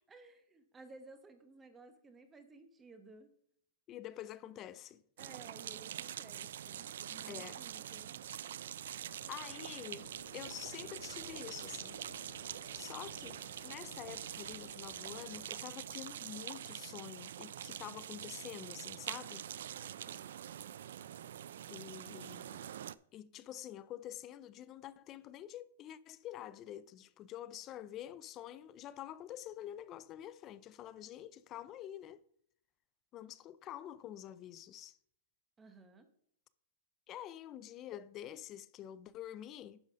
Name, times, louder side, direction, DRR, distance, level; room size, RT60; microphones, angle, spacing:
voice 1, 0.1-3.3 5.2-8.2 20.0-20.3 35.6-36.1, right 3 dB, 10° right, 0.9 m, -56 dB
voice 2, 3.9-5.0 7.3-7.6 8.8-9.0 9.3-12.0 12.7-19.5 21.7-22.7 23.1-32.2 33.1-35.0 37.1-39.8, left 11 dB, 20° left, 0.4 m, -47 dB
sound 1, 5.2-23.0, right 10 dB, 65° right, 0.3 m, -45 dB
sound 2, 6.3-15.5, left 4 dB, 85° left, 3.2 m, -59 dB
10.5 x 4.0 x 6.1 m
hypercardioid pair, 170°, 0 cm